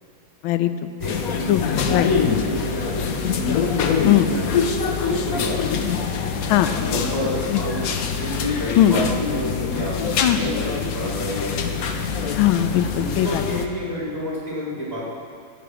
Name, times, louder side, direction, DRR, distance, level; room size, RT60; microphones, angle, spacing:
voice 1, 0.4-0.9 1.5-1.6 1.9-2.1 4.0-4.3 6.5-6.7 8.8-8.9 10.2-10.4 12.3-13.4, left 13 dB, 80° left, 10 dB, 1.4 m, -19 dB
sound 1, 1.0-13.7, left 6 dB, 60° left, 0.9 m, -25 dB
voice 2, 1.0-5.9 6.8-7.8 8.1-12.0 12.9-15.0, left 1 dB, 15° right, -8 dB, 3.4 m, -29 dB
15.5 x 9.2 x 4.9 m, 2.3 s
omnidirectional pair, 2.3 m